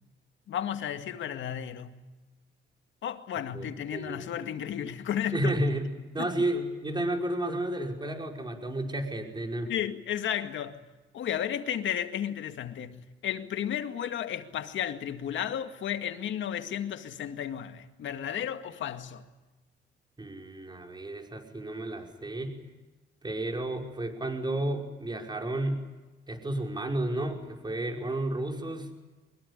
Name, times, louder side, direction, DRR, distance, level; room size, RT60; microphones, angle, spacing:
voice 1, 0.5-2.0 3.0-5.4 6.2-6.3 9.7-10.8 11.1-19.2, left 10 dB, 75° left, 2.1 m, -33 dB
voice 2, 3.5-4.2 5.3-5.9 6.1-9.7 20.2-22.6 23.2-25.8 26.3-28.9, right 1 dB, 20° right, 5.5 m, -32 dB
24.0 x 22.0 x 9.8 m
cardioid pair, 90°, 20 cm